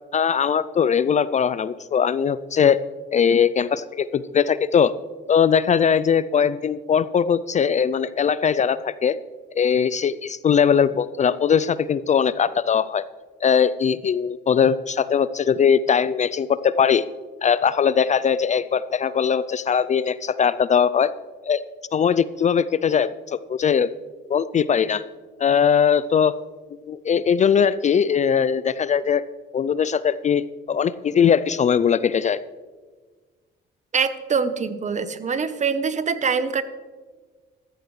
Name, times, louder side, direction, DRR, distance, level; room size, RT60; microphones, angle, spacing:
voice 1, 0.1-2.8 3.1-4.9 5.3-9.2 9.6-13.0 13.4-17.1 17.4-21.1 21.4-21.6 21.9-23.9 24.3-25.0 25.4-26.4 26.9-29.2 29.5-30.4 30.7-32.4, left 7 dB, 35° left, 16 dB, 0.4 m, -20 dB
voice 2, 33.9-36.6, right 5 dB, 35° right, 13 dB, 0.8 m, -24 dB
13.5 x 13.5 x 3.2 m, 1.4 s
cardioid pair, 90°, 20 cm